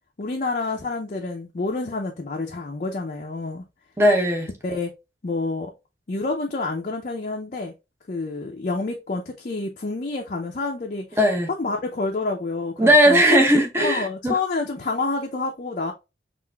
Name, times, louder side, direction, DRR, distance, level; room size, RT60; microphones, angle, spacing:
voice 1, 0.2-3.6 4.6-4.9 5.2-5.7 6.1-7.7 8.1-11.2 11.6-13.2 13.8-15.9, left 3 dB, 45° left, 0.5 m, -28 dB
voice 2, 4.0-4.5 11.2-11.5 12.8-14.4, equal, 15° right, 0.8 m, -17 dB
5.6 x 2.5 x 2.2 m
head